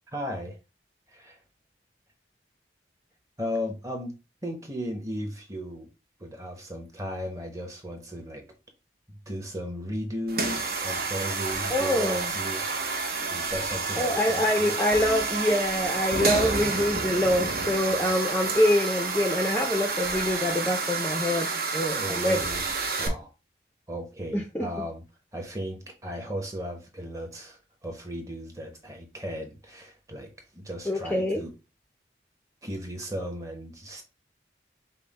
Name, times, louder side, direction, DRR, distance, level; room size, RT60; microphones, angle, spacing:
voice 1, 0.1-0.6 1.1-1.4 3.4-4.1 4.4-5.9 6.2-8.4 9.1-14.7 17.9-18.1 21.9-22.7 23.0-23.3 23.9-25.0 25.3-31.5 32.6-34.0, equal, 20° right, 0.9 m, -36 dB
sound 1, 10.3-23.1, right 4 dB, 55° right, 0.8 m, -29 dB
voice 2, 11.7-12.3 13.9-21.5 21.7-22.4 24.3-24.7 30.9-31.4, left 1 dB, 10° left, 0.5 m, -25 dB
5.4 x 2.1 x 4.0 m
head